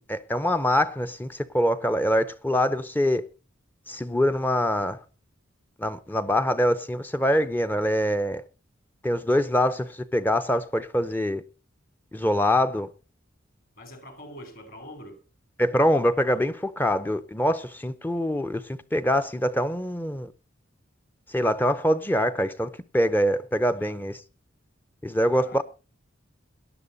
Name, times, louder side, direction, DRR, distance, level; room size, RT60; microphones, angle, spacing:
voice 1, 0.1-3.2 3.9-5.0 5.8-8.4 9.0-11.4 12.1-12.9 15.6-18.6 18.9-20.3 21.3-24.2 25.0-25.6, equal, 10° left, 0.6 m, -24 dB
voice 2, 13.8-15.2 23.8-24.0 25.3-25.6, left 1 dB, 45° left, 3.0 m, -44 dB
18.0 x 11.0 x 3.9 m
head